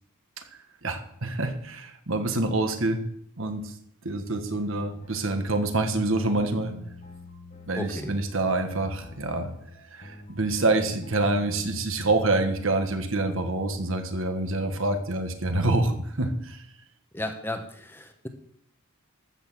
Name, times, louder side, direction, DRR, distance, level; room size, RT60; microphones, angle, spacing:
voice 1, 0.8-3.0 3.4-3.7 4.0-6.7 7.7-9.5 9.9-16.6, right 2 dB, 65° right, 7 dB, 1.5 m, -26 dB
sound 1, 4.5-12.4, left 2 dB, 35° left, 1.3 m, -47 dB
voice 2, 7.8-8.1 17.1-18.3, left 1 dB, 10° left, 6 dB, 1.0 m, -34 dB
13.5 x 6.4 x 7.5 m, 0.70 s
head